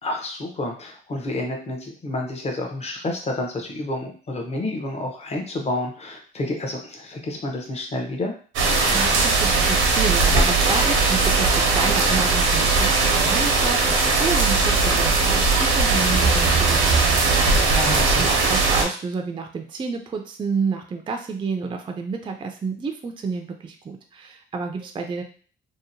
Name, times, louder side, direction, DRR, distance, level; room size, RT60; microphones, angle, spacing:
voice 1, 0.0-8.3 17.7-18.3, left 2 dB, 30° left, 2 dB, 0.7 m, -29 dB
sound 1, 8.6-18.8, right 3 dB, 90° right, 0.7 m, -19 dB
voice 2, 8.9-17.8 18.2-25.2, right 4 dB, 25° right, 4 dB, 0.3 m, -30 dB
2.8 x 2.0 x 2.6 m, 0.41 s
cardioid pair, 90°, 20 cm